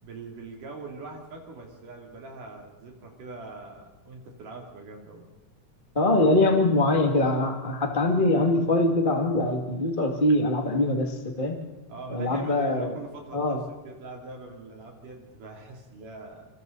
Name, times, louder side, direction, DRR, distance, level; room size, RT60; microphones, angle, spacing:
voice 1, 0.0-5.2 11.9-16.5, right 3 dB, 70° right, 1 dB, 4.7 m, -42 dB
voice 2, 5.9-11.6 12.1-12.9 13.3-13.6, left 2 dB, 20° left, 2 dB, 1.9 m, -23 dB
27.0 x 27.0 x 4.1 m, 1.2 s
omnidirectional pair, 3.8 m